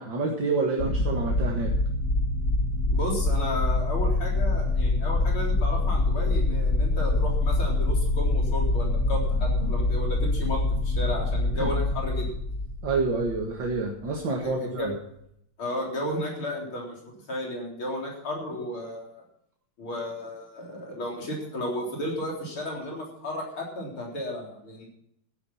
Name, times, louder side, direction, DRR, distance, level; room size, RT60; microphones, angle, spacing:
voice 1, 0.0-1.7 11.6-11.7 12.8-14.9, right 3 dB, 60° right, 0 dB, 2.4 m, -28 dB
sound 1, 0.8-13.8, left 2 dB, 45° left, 2.3 m, -25 dB
voice 2, 2.9-12.3 14.4-14.9 15.6-17.0 17.3-19.2 19.8-24.9, left 1 dB, 80° left, -2 dB, 4.6 m, -33 dB
14.5 x 9.7 x 5.8 m, 0.75 s
omnidirectional pair, 2.3 m